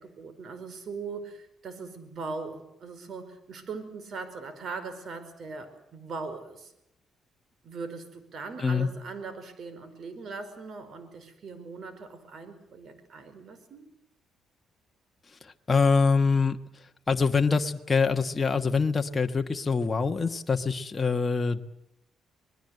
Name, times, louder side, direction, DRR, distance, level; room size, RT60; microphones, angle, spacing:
voice 1, 0.0-6.7 7.6-13.9, right 4 dB, 55° right, 11 dB, 5.0 m, -40 dB
voice 2, 15.3-21.6, left 4 dB, 25° left, 5 dB, 1.3 m, -25 dB
26.0 x 20.5 x 8.0 m, 0.78 s
cardioid pair, 90°, 0 cm